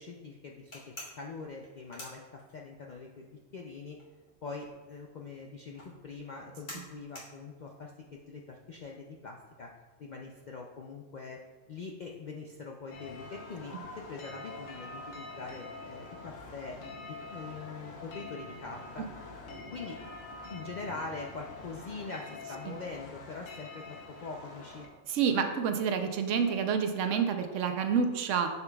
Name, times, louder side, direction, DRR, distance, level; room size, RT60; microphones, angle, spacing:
voice 1, 0.0-4.0 4.4-9.7 10.0-11.4 11.7-16.8 17.1-19.1 19.7-20.2 20.5-24.9, left 4 dB, 65° left, 0 dB, 0.4 m, -43 dB
sound 1, 0.7-2.9 3.2-9.0, left 1 dB, 40° left, 1.8 m, -48 dB
sound 2, 12.9-24.9, left 3 dB, 90° left, 1.3 m, -45 dB
voice 2, 25.1-28.5, right 6 dB, 75° right, 6 dB, 1.0 m, -28 dB
7.0 x 6.7 x 2.3 m, 1.3 s
omnidirectional pair, 1.3 m